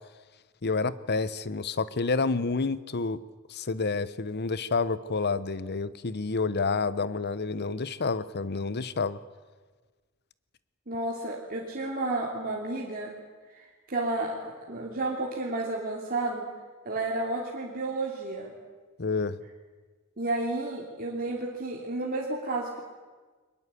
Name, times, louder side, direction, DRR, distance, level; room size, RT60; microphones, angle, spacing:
voice 1, 0.6-3.2 3.5-9.2 19.0-19.4, left 4 dB, 50° left, 16 dB, 0.9 m, -29 dB
voice 2, 10.9-13.2 13.5-14.3 14.7-16.5 16.8-18.5 20.2-22.8, right 2 dB, 45° right, -3 dB, 3.1 m, -31 dB
22.5 x 21.0 x 8.4 m, 1.4 s
head